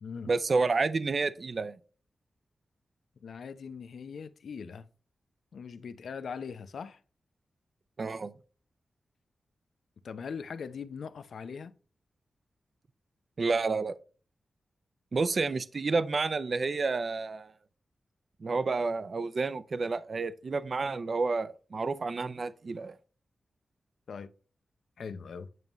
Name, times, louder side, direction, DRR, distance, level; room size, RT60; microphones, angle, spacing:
voice 1, 0.2-1.8 8.0-8.3 13.4-13.9 15.1-17.5 18.4-22.9, right 4 dB, 45° right, 0.4 m, -30 dB
voice 2, 3.2-4.8 5.5-7.0 10.0-11.7 24.1-24.3 25.0-25.5, left 6 dB, 75° left, 0.6 m, -40 dB
9.2 x 5.3 x 3.0 m
wide cardioid pair, 145°, 0 cm